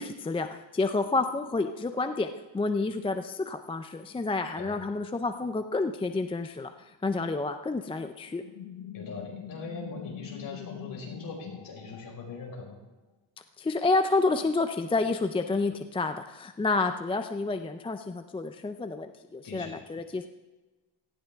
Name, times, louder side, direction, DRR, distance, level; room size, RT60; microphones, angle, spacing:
voice 1, 0.0-6.7 7.0-8.4 13.6-20.3, left 3 dB, 15° left, 7 dB, 0.3 m, -29 dB
sound 1, 8.3-12.8, left 11 dB, 90° left, 1.2 m, -43 dB
voice 2, 8.9-12.8 19.4-19.8, left 3 dB, 40° left, -2 dB, 4.8 m, -41 dB
18.0 x 14.5 x 3.5 m, 1.2 s
cardioid pair, 155°, 48 cm